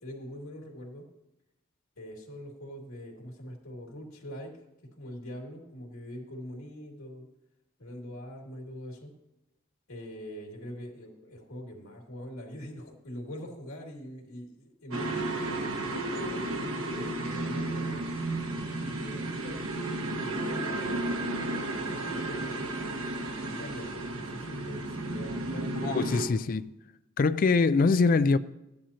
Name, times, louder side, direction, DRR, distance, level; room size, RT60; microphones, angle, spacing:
voice 1, 0.0-1.0 2.0-4.5 4.9-7.3 7.8-9.1 9.9-15.2 15.8-18.0 18.8-19.9 20.1-23.0 23.5-26.0 26.3-26.5, equal, 85° left, 2.5 m, -43 dB
sound 1, 14.9-26.3, right 2 dB, 75° right, 1.5 m, -33 dB
voice 2, 25.8-26.7 27.2-28.4, left 4 dB, 45° left, 0.4 m, -23 dB
15.0 x 10.5 x 2.9 m
head